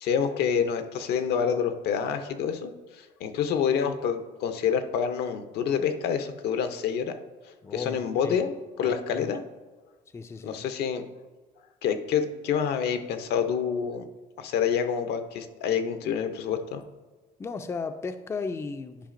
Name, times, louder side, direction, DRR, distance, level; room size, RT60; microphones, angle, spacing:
voice 1, 0.0-7.1 7.7-9.4 10.4-11.0 11.8-14.0 14.4-16.8, left 7 dB, 75° left, 0.6 m, -27 dB
voice 2, 7.6-8.4 8.8-9.3 10.1-10.6 17.4-19.1, left 4 dB, 15° left, 0.3 m, -35 dB
10.5 x 4.9 x 2.5 m
cardioid pair, 110°, 17 cm